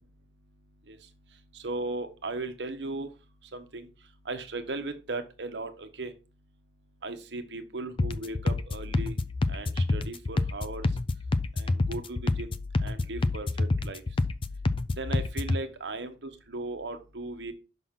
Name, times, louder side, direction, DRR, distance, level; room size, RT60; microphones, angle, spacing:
voice 1, 1.5-3.1 3.5-3.9 4.3-6.1 7.0-9.2 9.5-10.9 11.6-12.5 12.8-14.0 15.0-17.5, right 2 dB, 75° right, 8 dB, 1.0 m, -37 dB
sound 1, 8.0-15.6, left 2 dB, 30° left, 0.4 m, -28 dB
6.0 x 5.8 x 3.6 m, 0.32 s
head